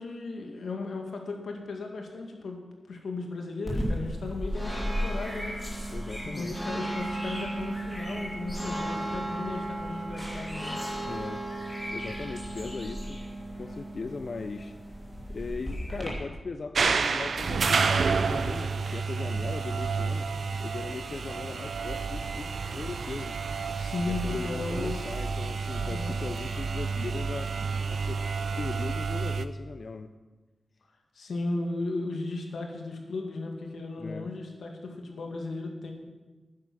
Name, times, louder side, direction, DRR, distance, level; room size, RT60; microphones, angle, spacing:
voice 1, 0.0-5.6 6.2-10.8 23.8-25.1 25.7-26.2 31.1-35.9, left 3 dB, 90° left, 2 dB, 2.1 m, -36 dB
sound 1, 3.6-16.1, right 1 dB, 5° left, 2.9 m, -34 dB
voice 2, 5.9-6.6 11.1-11.5 11.8-13.2 13.6-14.8 15.3-20.3 20.6-23.4 24.1-27.6 27.9-30.1 34.0-34.3, left 4 dB, 50° left, 9 dB, 0.4 m, -39 dB
sound 2, 16.7-29.5, right 5 dB, 65° right, 0.5 m, -30 dB
12.0 x 9.6 x 6.2 m, 1.2 s
wide cardioid pair, 155°, 0 cm